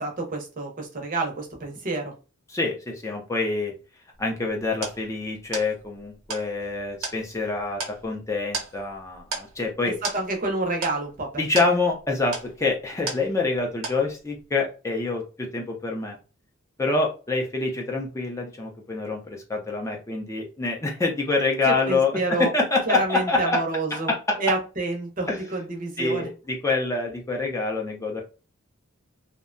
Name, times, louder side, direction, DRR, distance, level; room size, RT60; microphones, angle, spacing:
voice 1, 0.0-2.1 10.1-11.4 21.6-22.5 22.9-24.1 24.4-26.3, right 2 dB, 40° right, 2 dB, 0.6 m, -28 dB
voice 2, 2.5-3.7 4.2-10.0 11.4-16.2 16.8-23.6 23.9-24.6 25.3-25.4 26.0-28.2, left 3 dB, 15° left, 1 dB, 0.4 m, -26 dB
sound 1, 4.1-13.6 13.8-14.4, right 4 dB, 75° right, 0.8 m, -36 dB
2.6 x 2.1 x 2.5 m, 0.33 s
head